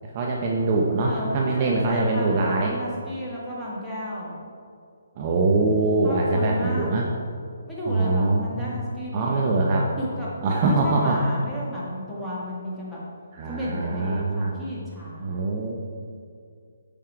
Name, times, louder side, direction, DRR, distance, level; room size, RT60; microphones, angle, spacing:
voice 1, 0.1-2.7 5.2-7.1 7.9-8.8 9.1-9.9 10.4-11.2 13.3-14.5 15.2-15.7, right 2 dB, 35° right, -1 dB, 0.9 m, -23 dB
voice 2, 1.1-4.4 6.0-7.1 7.7-9.5 9.9-10.3 10.7-13.0 13.4-15.4, equal, ahead, -9 dB, 1.9 m, -33 dB
8.7 x 5.5 x 4.7 m, 2.3 s
hypercardioid pair, 155°, 0 cm